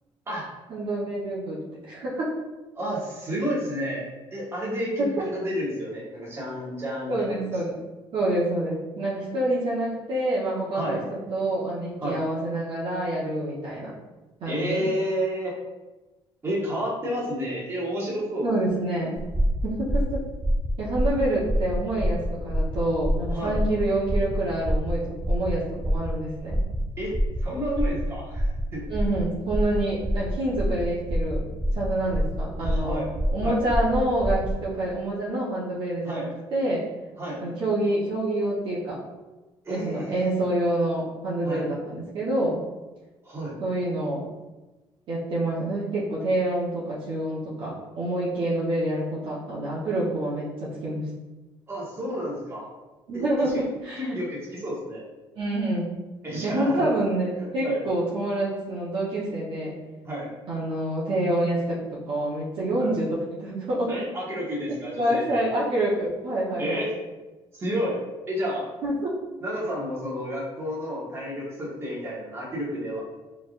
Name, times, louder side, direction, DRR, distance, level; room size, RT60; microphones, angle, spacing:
voice 1, 0.7-2.3 7.1-7.8 8.1-13.9 14.4-14.9 18.4-19.2 19.6-20.2 20.8-26.6 28.9-31.4 31.7-33.0 33.3-36.8 37.4-39.0 39.7-42.6 43.6-44.3 45.1-51.1 53.1-54.1 55.4-56.0 56.4-59.7 60.5-61.8 62.1-64.0 64.7-66.8 68.8-69.1, right 1 dB, 60° right, -6 dB, 1.0 m, -27 dB
voice 2, 2.7-4.0 4.3-7.3 10.7-11.0 12.0-12.2 14.4-15.5 16.4-18.5 23.3-23.6 27.0-27.1 27.4-28.5 28.7-28.8 32.0-32.1 32.5-33.1 33.4-33.6 36.0-36.3 37.2-37.4 39.6-40.3 41.4-41.6 43.2-43.5 51.7-52.6 53.1-53.6 54.0-55.0 56.2-56.9 57.4-57.8 60.0-60.3 62.8-62.9 63.9-65.4 66.6-66.9 67.5-68.0 68.3-68.7 69.4-73.0, equal, 25° right, -5 dB, 1.5 m, -30 dB
sound 1, 19.2-34.6, equal, 10° right, 0.6 m, -27 dB
4.4 x 3.4 x 2.5 m, 1.1 s
cardioid pair, 130°, 10 cm